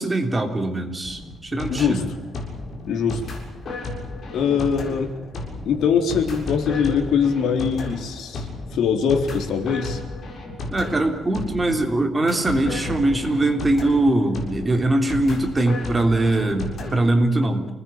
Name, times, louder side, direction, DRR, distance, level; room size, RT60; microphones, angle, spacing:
voice 1, 0.0-2.1 10.7-17.7, right 2 dB, 15° right, 4 dB, 3.4 m, -21 dB
sound 1, 1.0-17.0, left 2 dB, 40° left, 7.4 m, -33 dB
voice 2, 1.7-2.0 2.9-3.2 4.3-5.1 5.6-8.5 8.7-10.0, left 6 dB, 80° left, 6 dB, 3.8 m, -22 dB
28.0 x 20.0 x 9.1 m, 0.98 s
cardioid pair, 165°, 0 cm